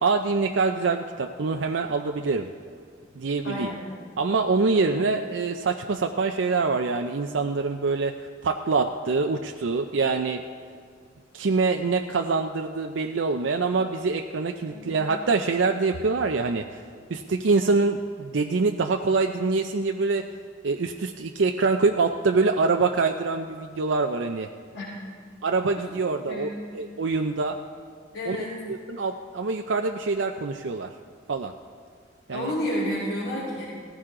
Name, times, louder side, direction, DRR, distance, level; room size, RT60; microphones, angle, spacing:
voice 1, 0.0-2.5 3.2-3.7 4.2-10.4 11.3-16.8 17.1-20.3 20.6-24.5 25.4-26.5 26.7-27.6 28.3-28.4 28.7-30.9 31.3-31.5 32.3-32.5, right 4 dB, 85° right, 4 dB, 0.5 m, -25 dB
voice 2, 3.4-3.8 4.7-4.9 14.7-15.1 24.7-25.0 26.3-26.6 28.1-28.6 32.3-33.6, equal, 85° left, -8 dB, 3.7 m, -31 dB
17.5 x 14.5 x 3.8 m, 2.1 s
head